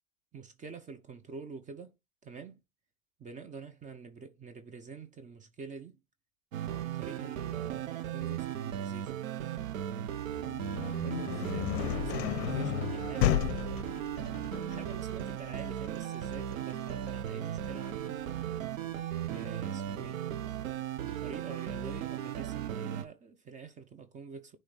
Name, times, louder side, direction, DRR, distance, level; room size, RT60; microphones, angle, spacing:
voice 1, 0.3-1.9 2.2-2.6 3.2-6.0 6.6-9.1 9.8-10.2 11.0-14.0 14.6-18.2 19.2-20.3 21.0-24.6, right 5 dB, 20° right, 0.7 m, -47 dB
sound 1, 6.5-23.0, right 11 dB, 65° right, 0.9 m, -36 dB
sound 2, 10.1-15.7, right 5 dB, 85° right, 2.0 m, -57 dB
sound 3, 10.3-20.1, left 14 dB, 50° left, 0.6 m, -35 dB
9.6 x 3.3 x 4.0 m
hypercardioid pair, 100°, 42 cm